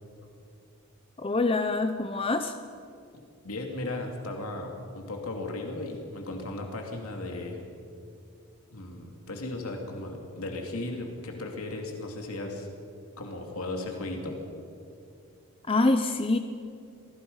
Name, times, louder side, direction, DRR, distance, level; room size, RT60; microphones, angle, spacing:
voice 1, 1.2-2.5 15.7-16.4, left 2 dB, 25° left, 8 dB, 0.6 m, -25 dB
voice 2, 3.4-7.6 8.7-12.7 13.2-14.4, left 2 dB, 75° left, 1 dB, 2.8 m, -36 dB
26.5 x 18.5 x 5.6 m, 2.5 s
head